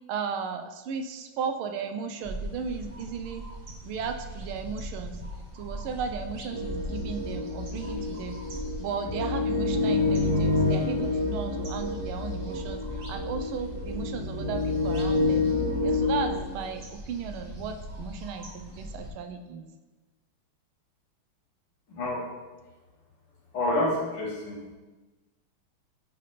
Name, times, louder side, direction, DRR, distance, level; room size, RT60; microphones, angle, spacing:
voice 1, 0.1-3.4 3.8-5.2 5.5-8.4 8.8-15.5 15.8-19.7, right 6 dB, 80° right, 7 dB, 1.4 m, -35 dB
sound 1, 2.2-19.1, right 1 dB, 50° right, 0.6 m, -42 dB
sound 2, 6.5-16.4, left 3 dB, 10° right, 1.3 m, -28 dB
voice 2, 21.9-22.2 23.5-24.6, left 1 dB, 80° left, -4 dB, 2.5 m, -28 dB
9.4 x 3.3 x 4.1 m, 1.2 s
omnidirectional pair, 2.3 m